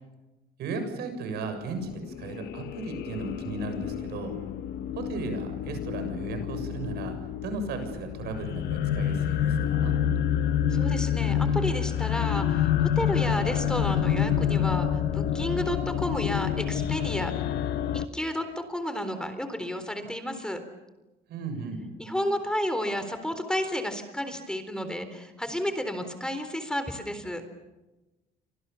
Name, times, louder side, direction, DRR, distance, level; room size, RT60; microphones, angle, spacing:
voice 1, 0.6-4.4 4.9-9.9 21.3-21.9, right 3 dB, 75° right, 7 dB, 7.1 m, -35 dB
sound 1, 1.8-18.1, left 9 dB, 75° left, 1.2 m, -28 dB
voice 2, 10.7-17.3 17.9-20.6 22.0-27.4, equal, 5° left, 8 dB, 3.8 m, -31 dB
30.0 x 25.5 x 7.1 m, 1.1 s
cardioid pair, 110°, 17 cm